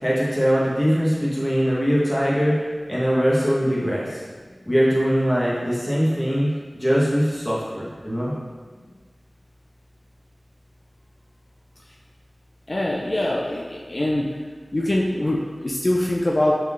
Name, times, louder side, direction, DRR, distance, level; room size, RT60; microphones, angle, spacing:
voice 1, 0.0-2.5 2.9-4.2 4.7-8.3, equal, ahead, -7 dB, 1.1 m, -21 dB
voice 2, 12.7-14.3 14.7-16.5, left 1 dB, 45° left, -3 dB, 0.4 m, -23 dB
3.6 x 3.2 x 2.4 m, 1.5 s
wide cardioid pair, 45°, 0 cm